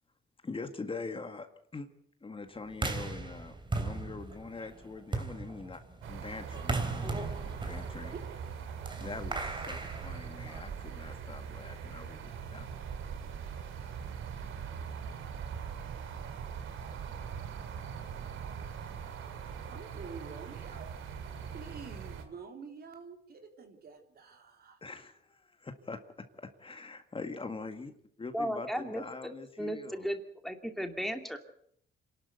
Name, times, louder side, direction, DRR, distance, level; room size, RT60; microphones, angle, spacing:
voice 1, 0.4-1.5 1.7-1.9 2.2-5.8 6.1-8.1 9.0-9.4 9.7-12.7 24.8-26.0 26.4-27.9 28.2-30.1, left 3 dB, 25° left, 8 dB, 1.9 m, -43 dB
sound 1, 2.7-10.8, right 3 dB, 25° right, 3.1 m, -38 dB
sound 2, 6.0-22.2, right 7 dB, 80° right, 2.9 m, -41 dB
voice 2, 8.1-9.2 9.5-9.8 19.6-21.0 21.4-24.8, right 5 dB, 50° right, 4 dB, 3.8 m, -48 dB
voice 3, 28.3-29.0 29.6-31.4, equal, ahead, 5 dB, 2.5 m, -35 dB
26.5 x 12.5 x 8.1 m, 0.66 s
cardioid pair, 90°, 20 cm